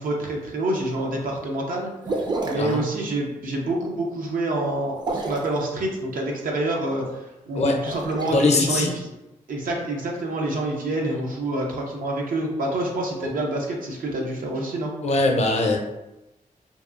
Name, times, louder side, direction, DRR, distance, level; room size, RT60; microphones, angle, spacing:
voice 1, 0.0-9.1 9.5-14.9, right 1 dB, 80° right, -1 dB, 0.5 m, -27 dB
sound 1, 2.0-2.7 4.9-5.6 7.7-8.3, right 2 dB, 30° right, 0.4 m, -28 dB
voice 2, 8.3-8.9 11.0-11.2 15.0-15.8, left 2 dB, 50° left, 2 dB, 0.5 m, -21 dB
2.7 x 2.3 x 2.4 m, 0.98 s
cardioid pair, 85°, 14 cm